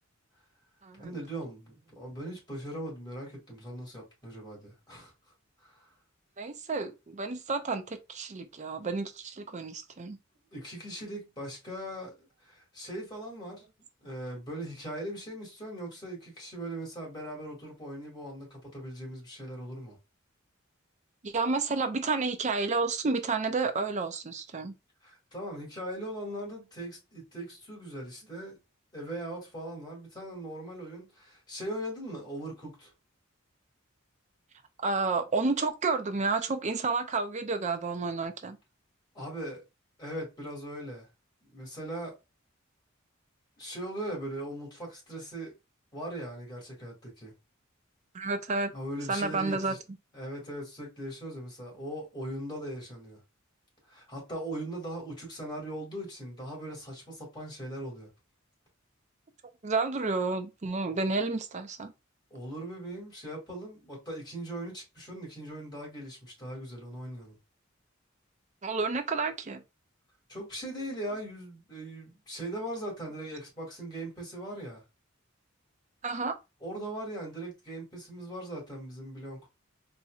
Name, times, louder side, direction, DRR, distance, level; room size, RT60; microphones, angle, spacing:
voice 1, 1.0-5.1 5.6-5.9 10.5-13.6 14.0-20.0 25.0-28.6 28.9-32.9 39.1-39.6 40.0-41.1 41.4-42.1 43.6-45.5 45.9-47.3 48.7-49.8 50.1-53.2 53.9-58.1 62.3-67.4 70.3-74.8 76.6-79.5, right 1 dB, 20° left, 2.1 m, -40 dB
voice 2, 6.4-10.2 21.2-24.7 34.8-38.6 48.1-48.7 49.1-49.8 59.6-61.9 68.6-69.6 76.0-76.4, right 4 dB, 35° right, 0.5 m, -30 dB
4.3 x 2.8 x 2.3 m
head